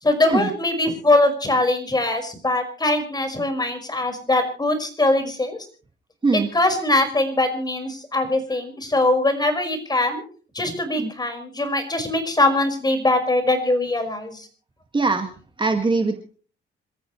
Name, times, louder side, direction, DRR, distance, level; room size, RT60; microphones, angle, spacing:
voice 1, 0.0-5.6 6.3-10.2 10.5-14.5, left 2 dB, 20° left, 6 dB, 5.3 m, -22 dB
voice 2, 14.9-15.3 15.6-16.2, right 3 dB, 25° right, 5 dB, 2.0 m, -21 dB
27.0 x 14.5 x 3.2 m, 0.41 s
cardioid pair, 90°, 20 cm